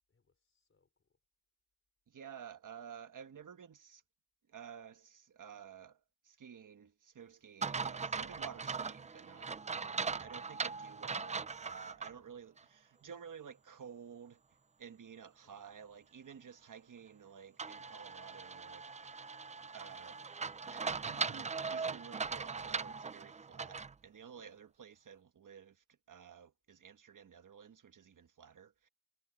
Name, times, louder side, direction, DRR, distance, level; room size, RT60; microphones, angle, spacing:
voice 1, 0.1-1.2 15.4-15.7 24.3-24.6, left 4 dB, 40° left, 5.1 m, -74 dB
voice 2, 2.1-4.0 4.5-9.6 9.8-14.4 14.8-19.3 19.7-20.2 20.7-28.9, right 7 dB, 60° right, 1.4 m, -53 dB
sound 1, 7.6-12.1 12.6-12.7 17.6-23.9, right 5 dB, 20° right, 0.3 m, -40 dB
wide cardioid pair, 170°, 34 cm